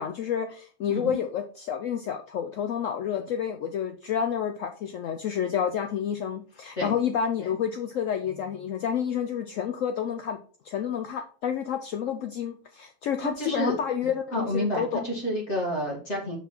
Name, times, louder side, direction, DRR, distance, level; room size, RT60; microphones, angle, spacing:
voice 1, 0.0-10.4 10.6-15.0, left 8 dB, 75° left, 0.7 m, -29 dB
voice 2, 13.4-13.7 14.3-16.4, equal, 40° left, 1.6 m, -29 dB
5.7 x 4.3 x 4.3 m
omnidirectional pair, 1.9 m